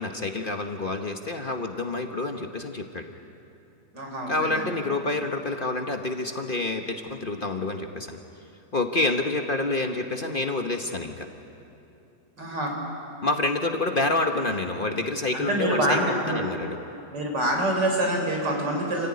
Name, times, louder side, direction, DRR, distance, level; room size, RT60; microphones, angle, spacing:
voice 1, 0.0-3.1 4.3-8.2 8.7-11.3 13.2-16.8, left 2 dB, 35° left, 4 dB, 1.1 m, -28 dB
voice 2, 3.9-4.6 12.4-12.7 15.3-16.4 17.1-19.1, right 1 dB, 90° right, 1 dB, 4.8 m, -26 dB
28.5 x 15.5 x 9.6 m, 2.8 s
omnidirectional pair, 1.8 m